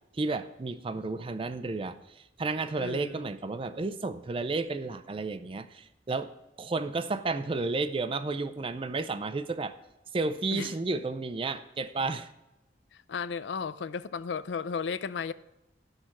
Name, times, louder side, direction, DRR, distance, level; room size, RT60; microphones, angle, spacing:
voice 1, 0.1-6.3 6.6-9.7 10.1-12.3, right 3 dB, 30° right, 0.4 m, -32 dB
voice 2, 2.8-3.3 10.5-10.8 12.9-15.3, left 6 dB, 80° left, 0.4 m, -34 dB
11.5 x 6.5 x 6.0 m
head